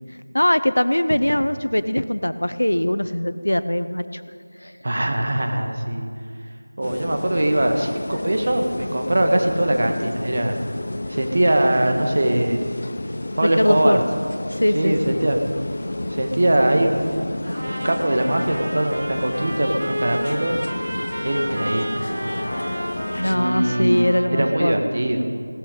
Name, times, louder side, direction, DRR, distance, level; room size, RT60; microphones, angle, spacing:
voice 1, 0.3-4.2 4.6-4.7 13.4-14.0 14.6-15.0 23.1-24.7, left 1 dB, 85° left, 13 dB, 0.8 m, -21 dB
voice 2, 4.8-6.1 6.8-10.6 11.1-12.8 13.4-14.0 14.7-15.4 16.1-20.6 21.2-22.5 23.3-25.2, right 1 dB, 40° right, 4 dB, 1.6 m, -22 dB
sound 1, 6.8-23.4, left 1 dB, 40° left, 0.8 m, -31 dB
Trumpet, 17.5-24.8, right 1 dB, 70° right, 2.4 m, -32 dB
17.5 x 12.5 x 5.3 m, 2.3 s
figure-of-eight pair, 175°, 0 cm